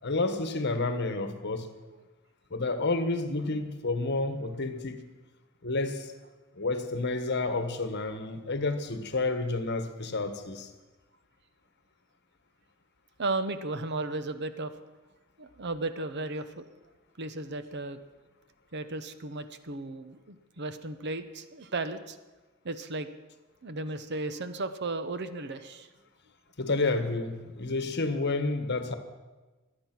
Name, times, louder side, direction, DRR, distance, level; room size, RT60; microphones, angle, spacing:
voice 1, 0.0-1.7 2.5-5.0 5.6-6.1 6.5-10.7 26.6-28.9, left 3 dB, 55° left, 9 dB, 1.3 m, -30 dB
voice 2, 13.2-14.8 15.4-16.6 17.2-18.0 18.7-22.2 22.6-23.1 23.6-25.9, right 2 dB, 55° right, 11 dB, 0.9 m, -35 dB
24.5 x 8.8 x 6.0 m, 1.2 s
head